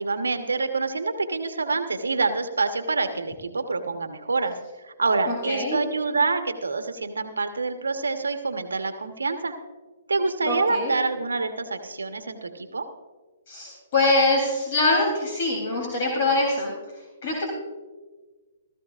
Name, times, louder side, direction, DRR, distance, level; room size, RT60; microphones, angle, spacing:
voice 1, 0.0-4.6 5.0-9.5 10.1-12.9, right 3 dB, 85° right, 7 dB, 1.1 m, -26 dB
voice 2, 5.3-5.8 10.4-10.9 13.5-16.7 17.2-17.5, left 2 dB, 50° left, -1 dB, 3.2 m, -23 dB
17.0 x 14.0 x 2.5 m, 1.3 s
hypercardioid pair, 135°, 0 cm